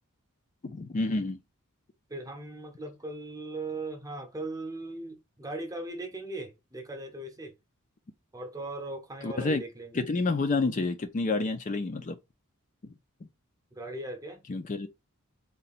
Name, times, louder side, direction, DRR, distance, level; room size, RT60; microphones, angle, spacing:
voice 1, 0.6-1.4 9.2-9.6 9.9-12.2 14.5-14.9, left 3 dB, 35° left, 0.4 m, -29 dB
voice 2, 2.1-7.6 8.3-10.0 13.7-14.4, right 2 dB, 15° right, 0.8 m, -38 dB
3.8 x 2.2 x 4.1 m
head